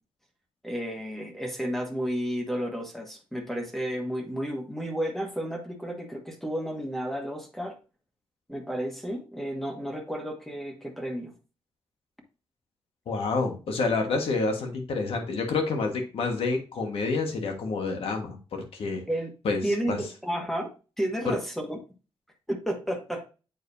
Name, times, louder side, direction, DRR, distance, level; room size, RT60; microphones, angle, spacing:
voice 1, 0.6-7.7 8.5-11.3 19.1-19.3 19.6-20.7 21.0-21.8 22.5-23.2, equal, 5° left, 3 dB, 1.2 m, -32 dB
voice 2, 13.1-19.0 19.4-19.6 19.9-20.0 21.2-21.3, left 4 dB, 85° left, 3 dB, 1.5 m, -28 dB
7.9 x 4.7 x 2.7 m, 0.33 s
wide cardioid pair, 130°, 10 cm